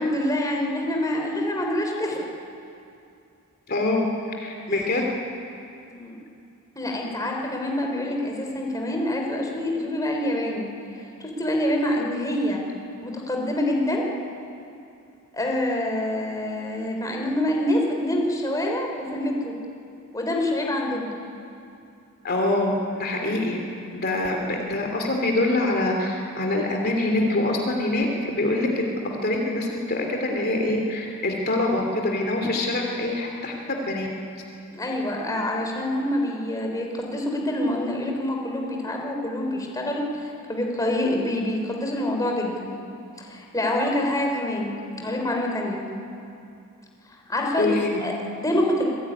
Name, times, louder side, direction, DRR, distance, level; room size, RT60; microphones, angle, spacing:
voice 1, 0.0-2.3 4.7-4.9 5.9-6.2 6.8-10.7 11.2-12.6 13.0-14.1 15.3-19.5 20.1-21.1 34.7-42.7 43.2-45.9 47.3-47.7 48.0-48.1 48.4-48.9, left 1 dB, 15° left, 0 dB, 3.7 m, -26 dB
voice 2, 3.7-5.0 22.2-23.6 23.9-28.9 29.2-34.1 47.6-48.0, left 2 dB, 45° left, 1 dB, 2.9 m, -25 dB
26.5 x 21.0 x 9.8 m, 2.6 s
head